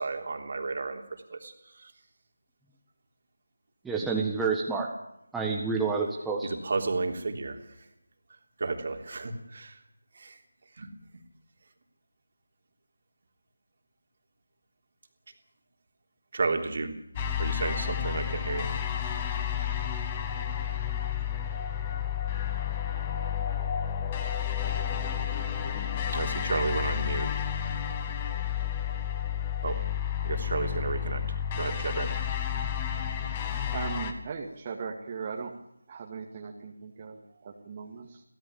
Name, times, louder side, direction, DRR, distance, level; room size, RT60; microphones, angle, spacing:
voice 1, 0.0-1.9 6.4-7.9 8.6-9.8 10.1-10.4 10.8-11.2 16.3-16.9 17.4-18.7 26.1-27.3 29.6-29.8 30.2-31.2 31.5-32.1, right 3 dB, 45° right, 5 dB, 3.3 m, -32 dB
voice 2, 3.8-4.9 5.3-6.5, right 4 dB, 5° right, -2 dB, 1.5 m, -28 dB
sound 1, 17.2-34.1, left 8 dB, 20° left, 1.8 m, -31 dB
voice 3, 33.7-35.5 35.9-38.2, right 5 dB, 25° right, 1 dB, 2.2 m, -38 dB
23.5 x 17.5 x 7.1 m, 0.79 s
figure-of-eight pair, 160°, 0 cm